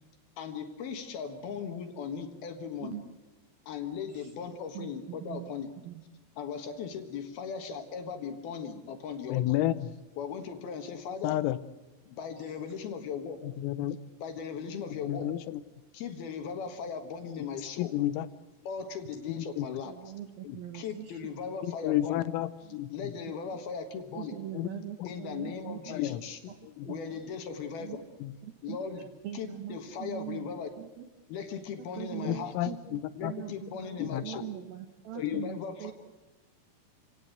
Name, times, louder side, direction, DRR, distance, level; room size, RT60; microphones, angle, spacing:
voice 1, 0.4-3.0 3.7-5.7 6.4-9.6 10.2-11.4 12.1-13.4 14.2-15.3 15.9-18.0 18.6-20.0 20.7-22.2 22.9-24.3 25.0-26.4 26.9-28.0 28.6-29.1 29.3-30.7 31.3-32.6 33.2-34.5 35.1-35.9, left 6 dB, 60° left, 7 dB, 2.9 m, -38 dB
voice 2, 4.7-5.5 5.9-6.0 12.4-12.5 19.9-21.3 22.7-22.8 23.2-23.4 24.2-26.0 26.8-27.2 27.8-28.0 28.4-28.8 29.2-30.5 30.8-31.1 32.0-35.9, right 12 dB, 70° right, 6 dB, 2.3 m, -42 dB
voice 3, 9.3-9.9 11.2-11.6 13.4-14.0 15.1-15.6 17.8-18.3 19.4-19.7 20.5-20.6 21.6-22.9 24.5-25.2 25.9-26.2 26.6-26.9 28.2-28.3 32.3-33.3 34.0-34.4 35.2-35.5, left 14 dB, 85° left, 14 dB, 3.6 m, -31 dB
28.0 x 18.0 x 8.0 m, 1.2 s
omnidirectional pair, 5.8 m